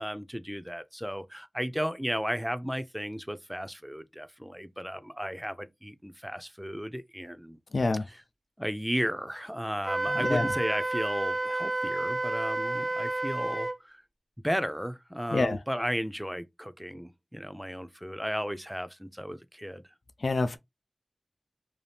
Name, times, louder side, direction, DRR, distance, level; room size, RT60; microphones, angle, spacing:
voice 1, 0.0-7.6 8.6-14.0 14.4-19.8, equal, 5° right, 0.5 m, -34 dB
voice 2, 7.7-8.1 10.1-10.5 15.3-15.6 20.2-20.6, left 3 dB, 80° left, 0.4 m, -27 dB
Wind instrument woodwind instrument, 9.8-13.8, right 2 dB, 60° right, 0.7 m, -30 dB
2.7 x 2.3 x 3.3 m
wide cardioid pair, 50°, 0 cm